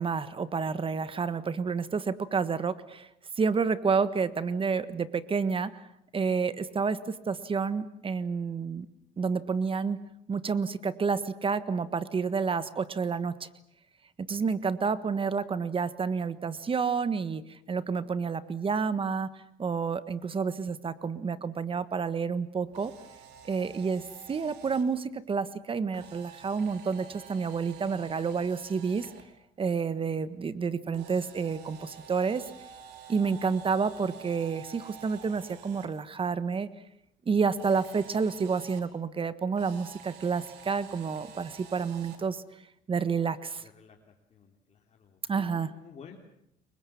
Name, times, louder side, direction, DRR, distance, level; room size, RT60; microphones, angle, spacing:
voice 1, 0.0-3.1 3.4-5.8 6.1-8.9 9.2-10.0 10.3-13.5 14.2-22.9 23.4-29.1 29.6-32.4 33.1-36.7 37.2-42.4 42.9-43.6 45.3-45.7, right 5 dB, 30° right, 13 dB, 1.5 m, -29 dB
Camera, 22.6-24.8 25.9-29.2 30.9-35.9 37.5-38.8 39.5-42.2, right 7 dB, 80° right, 4.9 m, -49 dB
voice 2, 43.6-44.0 44.3-46.2, left 6 dB, 40° left, 1 dB, 3.4 m, -52 dB
29.5 x 23.5 x 7.2 m, 0.77 s
cardioid pair, 110°, 17 cm